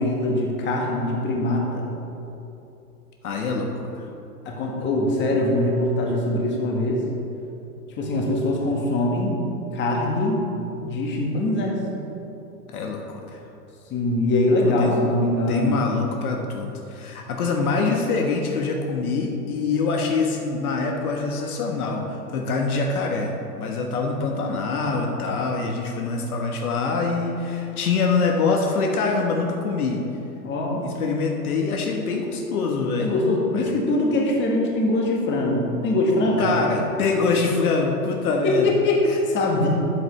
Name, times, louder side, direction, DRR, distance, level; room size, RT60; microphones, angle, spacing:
voice 1, 0.0-1.9 4.5-7.0 8.0-9.4 9.7-10.4 10.8-11.8 13.9-16.0 30.4-30.9 33.0-36.5 38.6-39.0 39.3-39.7, left 1 dB, 25° left, -1 dB, 1.7 m, -22 dB
voice 2, 3.2-4.1 12.7-13.4 14.6-15.0 15.5-30.0 30.8-33.1 33.5-33.7 36.4-38.7 39.1-39.2, left 4 dB, 65° left, 1 dB, 1.3 m, -25 dB
13.0 x 8.0 x 3.2 m, 2.9 s
hypercardioid pair, 115°, 47 cm